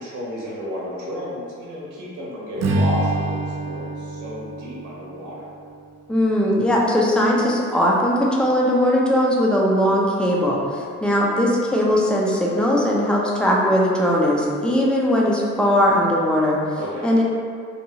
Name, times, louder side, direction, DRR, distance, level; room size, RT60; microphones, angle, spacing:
voice 1, 0.0-5.5 16.8-17.2, equal, 80° right, -7 dB, 0.8 m, -32 dB
Strum, 2.6-7.0, right 2 dB, 60° right, 0.4 m, -27 dB
voice 2, 6.1-16.6 17.0-17.2, equal, 5° left, -3 dB, 0.4 m, -19 dB
2.7 x 2.3 x 2.8 m, 2.2 s
cardioid pair, 90°, 30 cm